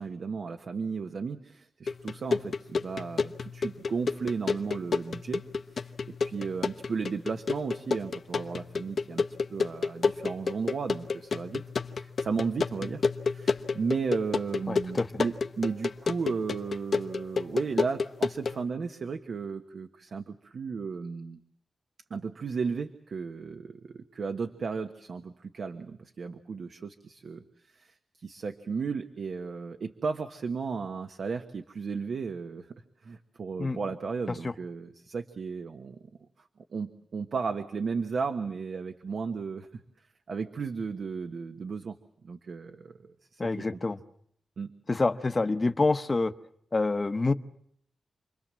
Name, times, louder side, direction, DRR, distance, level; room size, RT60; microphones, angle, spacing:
voice 1, 0.0-5.4 5.7-9.2 9.5-11.6 11.9-21.4 22.1-32.7 33.0-36.0 36.7-39.8 40.3-42.0 42.2-43.8 44.6-44.7, right 5 dB, 65° right, 7 dB, 1.3 m, -34 dB
sound 1, 1.9-18.6, left 4 dB, 55° left, 1.0 m, -31 dB
voice 2, 14.7-15.1 33.6-33.8 34.4-34.5 43.4-44.0 44.9-46.3 46.7-47.3, left 3 dB, 25° left, 10 dB, 1.0 m, -26 dB
29.0 x 22.5 x 7.6 m, 0.69 s
wide cardioid pair, 165°, 0 cm